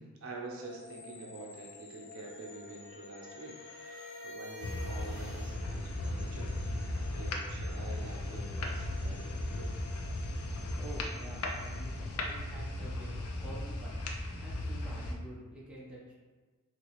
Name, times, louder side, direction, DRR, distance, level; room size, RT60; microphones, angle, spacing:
voice 1, 0.0-3.7 4.2-6.5 7.1-9.7, right 2 dB, 65° right, -2 dB, 0.6 m, -47 dB
sound 1, 0.6-12.8, left 4 dB, 25° left, 0.3 m, -54 dB
sound 2, 2.0-5.6, left 2 dB, 55° left, 1.0 m, -48 dB
sound 3, 4.6-15.1, left 1 dB, 85° left, 0.5 m, -36 dB
voice 2, 10.8-14.0 14.4-16.0, right 1 dB, 5° right, -7 dB, 0.7 m, -48 dB
3.0 x 2.9 x 2.9 m, 1.4 s
head